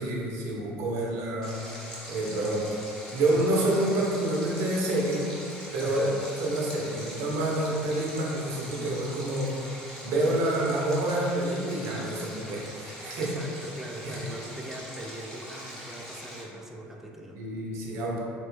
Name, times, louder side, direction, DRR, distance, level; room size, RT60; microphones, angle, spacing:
voice 1, 0.0-1.5 1.8-2.7 3.1-5.3 5.7-6.1 6.4-9.5 10.0-13.3 14.0-14.2 17.4-18.2, right 1 dB, 65° right, -3 dB, 0.7 m, -28 dB
Stream, 1.4-16.4, equal, 10° left, 0.8 m, -42 dB
voice 2, 5.8-6.2 13.2-17.4, right 1 dB, 5° right, 0 dB, 0.3 m, -41 dB
3.1 x 2.1 x 3.0 m, 2.4 s
supercardioid pair, 105°, 5 cm